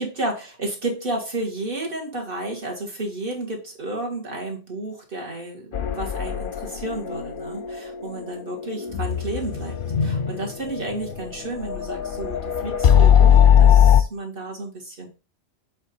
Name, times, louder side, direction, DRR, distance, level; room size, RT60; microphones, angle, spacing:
voice 1, 0.0-9.8 10.0-15.1, right 2 dB, 50° right, 0 dB, 2.1 m, -32 dB
sound 1, 5.7-14.0, left 9 dB, 55° left, 0.7 m, -20 dB
7.6 x 3.9 x 4.3 m, 0.32 s
omnidirectional pair, 1.2 m